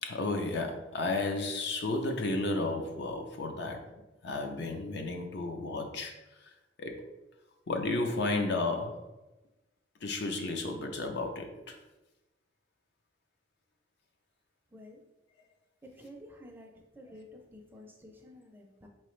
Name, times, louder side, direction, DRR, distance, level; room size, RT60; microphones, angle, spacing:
voice 1, 0.0-3.9 4.2-6.1 6.8-7.0 7.7-9.0 10.0-11.8, left 2 dB, 60° left, 4 dB, 0.5 m, -33 dB
voice 2, 14.7-15.0 15.8-18.9, left 1 dB, 10° right, 1 dB, 0.4 m, -51 dB
4.4 x 3.0 x 3.1 m, 1.0 s
head